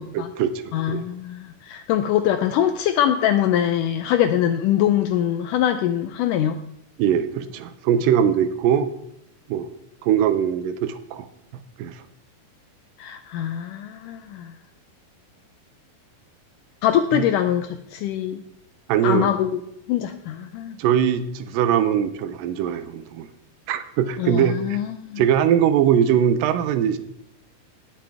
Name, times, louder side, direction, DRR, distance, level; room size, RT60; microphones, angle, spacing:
voice 1, 0.0-1.0 7.0-8.9 9.5-9.7 10.0-11.3 11.8-12.0 17.1-17.2 18.9-19.3 20.8-23.3 23.7-24.8 25.2-27.0, right 9 dB, 80° right, 12 dB, 2.2 m, -21 dB
voice 2, 0.7-6.6 13.0-14.5 16.8-18.4 19.0-19.6 19.9-20.8 24.2-25.2, left 10 dB, 80° left, 8 dB, 2.0 m, -23 dB
19.0 x 7.6 x 3.4 m, 0.76 s
omnidirectional pair, 4.2 m